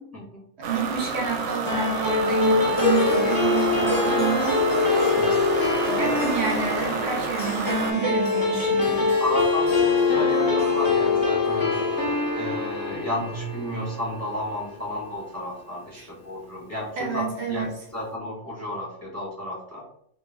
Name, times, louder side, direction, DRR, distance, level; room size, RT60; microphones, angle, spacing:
voice 1, 0.6-4.6 5.8-9.1 15.9-16.1 17.0-17.7, right 6 dB, 60° right, 0 dB, 0.8 m, -28 dB
sound 1, 0.6-7.9, right 5 dB, 90° right, 1.1 m, -30 dB
sound 2, 1.7-14.4, left 4 dB, 25° left, 0.5 m, -24 dB
Harp, 2.7-15.3, left 2 dB, 75° left, 0.4 m, -31 dB
voice 2, 9.2-11.8 12.3-17.2 17.5-19.8, left 1 dB, 15° right, -5 dB, 0.8 m, -32 dB
2.5 x 2.1 x 3.4 m, 0.71 s
omnidirectional pair, 1.5 m